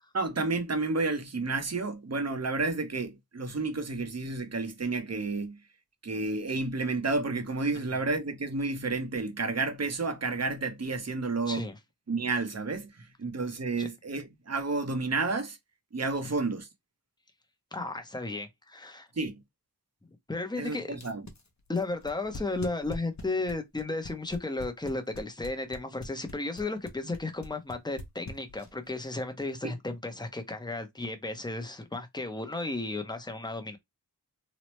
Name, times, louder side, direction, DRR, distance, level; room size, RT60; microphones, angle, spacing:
voice 1, 0.1-5.6 6.0-11.6 12.1-15.6 15.9-16.7 19.2-19.3 20.6-21.2 29.6-29.7, right 3 dB, 45° right, 0.7 m, -31 dB
voice 2, 11.5-11.8 13.8-13.9 17.7-19.1 20.3-21.0 21.7-33.8, left 2 dB, 10° left, 0.7 m, -34 dB
sound 1, 20.9-28.9, left 2 dB, 45° left, 0.8 m, -42 dB
3.0 x 2.0 x 3.0 m
wide cardioid pair, 45°, 38 cm